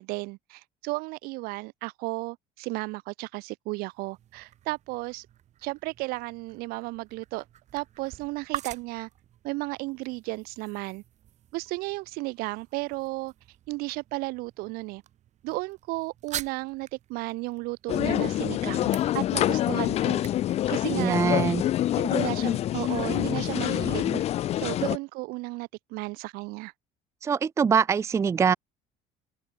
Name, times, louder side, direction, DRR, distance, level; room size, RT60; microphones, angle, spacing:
voice 1, 0.0-5.3 5.6-7.4 7.7-9.1 9.4-11.0 11.5-13.3 13.7-15.0 15.4-20.2 20.7-21.2 22.0-24.1 24.6-26.7, right 24 dB, 80° right, 0.8 m, -34 dB
sound 1, 3.9-21.7, right 11 dB, 50° right, 6.0 m, -46 dB
sound 2, 17.9-25.0, left 13 dB, 45° left, 0.5 m, -26 dB
voice 2, 21.0-21.6 24.0-24.2 27.2-28.5, right 6 dB, 20° right, 0.4 m, -23 dB
open air
cardioid pair, 135°, 15 cm